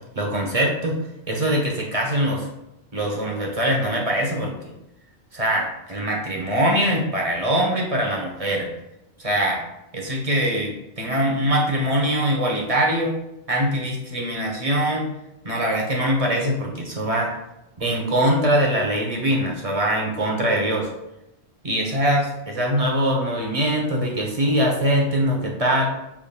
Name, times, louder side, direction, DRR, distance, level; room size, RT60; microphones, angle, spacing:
voice 1, 0.1-1.0 1.3-2.5 2.9-4.6 5.3-8.7 9.2-9.6 9.9-13.2 13.5-15.1 15.4-17.3 17.8-20.9 21.6-25.9, equal, 35° right, -1 dB, 0.8 m, -22 dB
6.4 x 3.6 x 2.3 m, 0.89 s
omnidirectional pair, 1.1 m